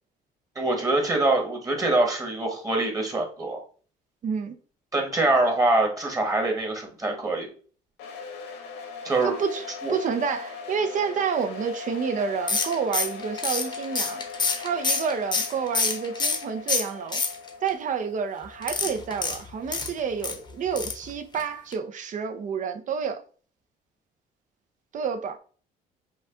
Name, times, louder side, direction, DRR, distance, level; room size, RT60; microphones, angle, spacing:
voice 1, 0.5-3.6 4.9-7.5 9.0-9.3 9.8-9.9, right 2 dB, 20° right, 1.5 m, -24 dB
voice 2, 4.2-4.6 9.2-9.6 9.9-14.2 14.6-17.2 17.6-23.2 24.9-25.4, right 6 dB, 50° right, 0.7 m, -29 dB
sound 1, 8.0-20.8, left 5 dB, 90° left, 1.3 m, -40 dB
sound 2, 12.5-16.4 16.7-17.7 18.6-20.4 20.7-21.1 21.3-21.4 21.7-21.8, left 4 dB, 25° left, 0.8 m, -27 dB
5.3 x 2.4 x 3.7 m
cardioid pair, 110°, 17 cm